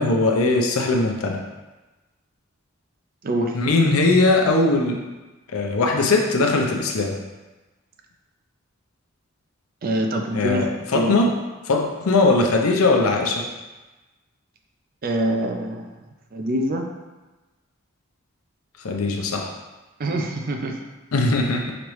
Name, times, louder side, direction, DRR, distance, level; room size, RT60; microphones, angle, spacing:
voice 1, 0.0-1.4 3.5-5.0 5.5-7.1 10.3-10.7 10.9-11.3 11.6-13.4 18.8-19.5 21.1-21.6, left 3 dB, 85° left, 1 dB, 0.6 m, -20 dB
voice 2, 3.2-3.6 9.8-10.6 10.9-11.2 15.0-15.9 16.3-16.9 20.0-20.8, right 1 dB, 45° right, 3 dB, 0.4 m, -24 dB
5.1 x 3.1 x 3.1 m, 1.2 s
head